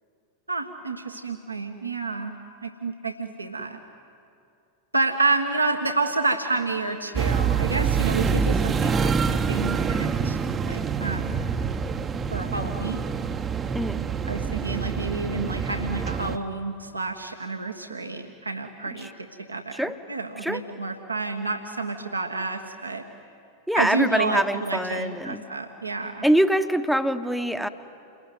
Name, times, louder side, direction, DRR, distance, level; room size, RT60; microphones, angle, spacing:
voice 1, 0.5-2.3 2.6-3.8 4.9-10.4 10.7-11.4 12.3-13.0 14.3-19.1 19.5-19.8 20.1-23.0 23.7-26.2, right 3 dB, 85° right, 3 dB, 1.4 m, -29 dB
sound 1, 7.1-16.4, right 6 dB, 20° right, 1.0 m, -26 dB
voice 2, 23.7-25.4 26.2-27.7, equal, ahead, 9 dB, 1.1 m, -24 dB
29.0 x 21.0 x 9.4 m, 2.5 s
figure-of-eight pair, 90°, 0 cm